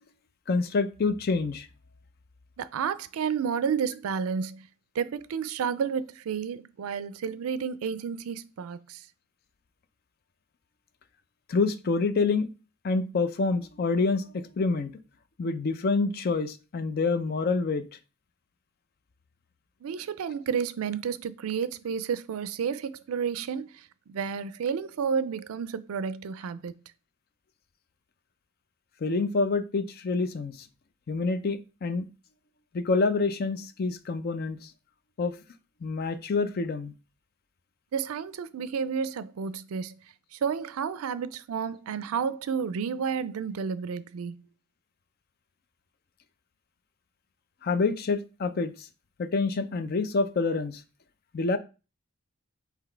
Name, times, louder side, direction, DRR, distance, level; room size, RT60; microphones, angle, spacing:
voice 1, 0.5-1.7 11.5-12.5 12.8-14.9 15.4-17.9 29.0-30.7 31.1-32.1 32.7-34.7 35.2-35.4 35.8-36.9 47.6-48.9 49.2-50.8 51.3-51.6, left 4 dB, 45° left, 0.4 m, -27 dB
voice 2, 2.6-4.6 5.0-9.0 19.8-23.7 24.1-26.8 37.9-39.9 40.3-44.4, right 6 dB, 90° right, 0.4 m, -31 dB
3.9 x 2.8 x 4.4 m
head